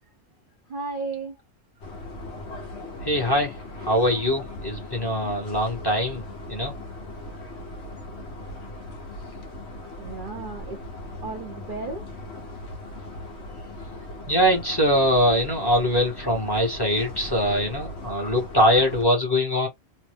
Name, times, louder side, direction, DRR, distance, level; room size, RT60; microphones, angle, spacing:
voice 1, 0.7-1.3 10.0-10.8 11.2-12.1, right 3 dB, 50° right, 0.7 m, -33 dB
sound 1, 1.8-19.0, left 1 dB, 60° left, 1.1 m, -39 dB
voice 2, 3.0-6.2 6.5-6.7 14.3-19.7, equal, 20° left, 1.1 m, -22 dB
3.1 x 2.0 x 3.3 m
omnidirectional pair, 1.3 m